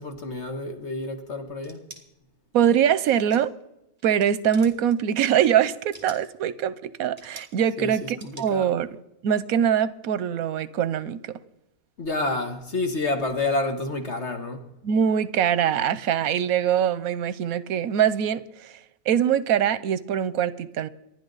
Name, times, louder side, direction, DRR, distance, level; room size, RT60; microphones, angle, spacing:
voice 1, 0.0-1.8 7.8-8.0 8.2-8.7 12.0-14.7, left 2 dB, 55° left, 1.6 m, -29 dB
sound 1, 1.6-2.0 3.1-3.6 4.0-4.3 4.5-5.0 5.7-6.3 7.2-7.6 8.2-8.5, right 2 dB, 25° right, 1.9 m, -45 dB
voice 2, 2.5-3.5 4.0-11.3 14.8-18.7 19.1-20.9, right 9 dB, 85° right, 1.2 m, -23 dB
27.0 x 11.0 x 4.0 m
omnidirectional pair, 1.5 m